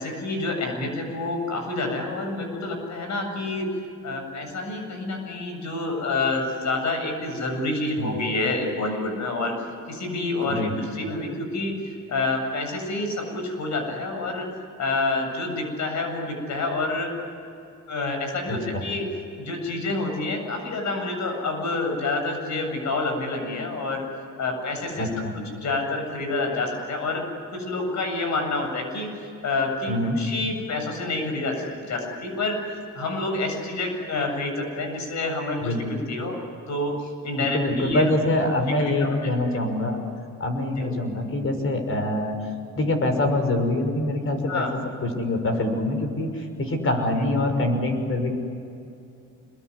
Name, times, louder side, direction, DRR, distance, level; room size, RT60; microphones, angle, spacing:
voice 1, 0.0-3.7 4.0-9.5 9.9-14.5 14.8-17.1 17.9-19.0 19.4-24.0 24.4-25.1 25.3-27.2 27.5-29.1 29.4-32.6 32.9-36.4 36.7-38.0 39.0-39.3 40.8-40.9 44.5-44.7, left 2 dB, 65° left, 4 dB, 7.9 m, -28 dB
voice 2, 18.5-18.8 24.9-25.3 29.8-30.2 35.6-35.8 37.4-40.0 40.4-42.4 42.7-44.7 45.0-48.3, left 1 dB, 45° left, 6 dB, 6.1 m, -25 dB
26.5 x 22.5 x 9.9 m, 2.6 s
cardioid pair, 90°, 30 cm